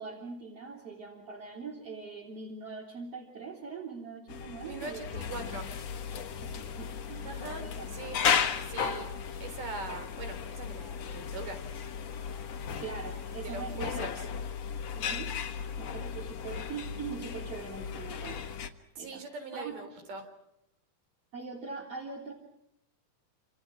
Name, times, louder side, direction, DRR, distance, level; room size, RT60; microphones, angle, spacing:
voice 1, 0.0-5.2 6.4-8.0 12.8-14.1 14.9-15.3 15.8-18.3 19.0-19.7 21.3-22.3, right 5 dB, 40° right, -3 dB, 4.3 m, -42 dB
sound 1, 4.3-18.7, left 7 dB, 55° left, 2.2 m, -35 dB
voice 2, 4.6-5.7 7.3-8.2 8.6-9.1 9.4-11.6 13.4-14.3 19.0-20.3, right 4 dB, 60° right, 6 dB, 5.2 m, -42 dB
28.5 x 28.0 x 5.9 m, 0.81 s
omnidirectional pair, 4.3 m